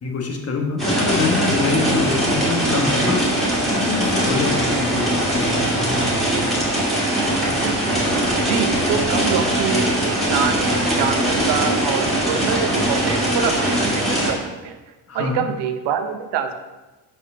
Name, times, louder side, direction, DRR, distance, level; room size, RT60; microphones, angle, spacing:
voice 1, 0.0-3.3 3.7-6.1 15.1-15.4, left 4 dB, 35° left, 2 dB, 1.2 m, -25 dB
sound 1, 0.8-14.3, right 1 dB, ahead, 2.2 m, -21 dB
voice 2, 8.4-14.8 15.1-16.5, right 7 dB, 65° right, 7 dB, 0.8 m, -25 dB
5.0 x 4.5 x 5.5 m, 1.1 s
cardioid pair, 100°, 44 cm